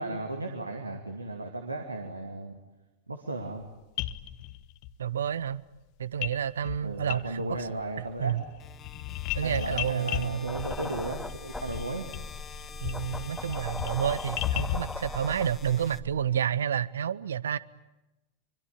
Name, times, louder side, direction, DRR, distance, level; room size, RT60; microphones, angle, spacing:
voice 1, 0.0-2.6 3.1-3.7 6.8-8.4 9.4-12.1, right 2 dB, 80° right, 2.5 m, -35 dB
sound 1, 3.6-3.7 4.0-4.9 6.2-6.4 6.6-7.7 8.0-15.0, left 14 dB, 45° left, 1.2 m, -36 dB
voice 2, 5.0-5.6 6.0-7.7 8.2-8.4 9.3-10.7 12.8-17.6, right 9 dB, 65° right, 0.9 m, -30 dB
sound 2, 8.6-16.6, left 7 dB, 25° left, 1.5 m, -48 dB
sound 3, 10.5-16.2, left 1 dB, 5° left, 1.7 m, -39 dB
25.5 x 24.5 x 8.7 m
figure-of-eight pair, 90°, 0 cm